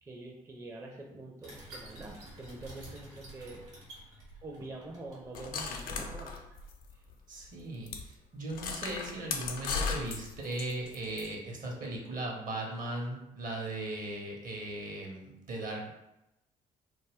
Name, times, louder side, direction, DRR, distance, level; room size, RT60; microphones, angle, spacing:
voice 1, 0.0-3.7 4.4-6.4 6.9-7.0, right 2 dB, 15° right, 0 dB, 0.5 m, -45 dB
sound 1, 1.4-6.7, right 2 dB, 80° right, 1.0 m, -51 dB
sound 2, 5.3-7.1 7.4-7.5 7.9-8.0 8.5-11.3, left 5 dB, 60° left, 0.5 m, -36 dB
voice 2, 7.3-15.9, right 2 dB, 50° right, 1 dB, 0.8 m, -38 dB
2.3 x 2.2 x 3.4 m, 0.90 s
hypercardioid pair, 45°, 17 cm